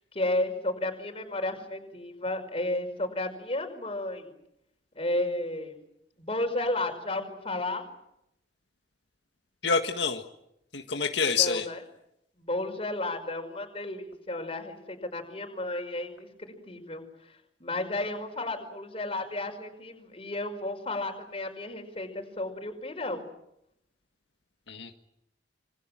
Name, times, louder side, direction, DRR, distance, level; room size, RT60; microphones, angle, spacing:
voice 1, 0.0-4.3 4.9-5.8 6.2-7.8 11.2-11.8 12.4-17.3 17.6-23.3, left 2 dB, 35° left, 5 dB, 5.4 m, -33 dB
voice 2, 9.6-10.2 10.7-11.7 24.7-24.9, left 5 dB, 85° left, 5 dB, 1.7 m, -27 dB
27.0 x 24.5 x 7.6 m, 0.80 s
head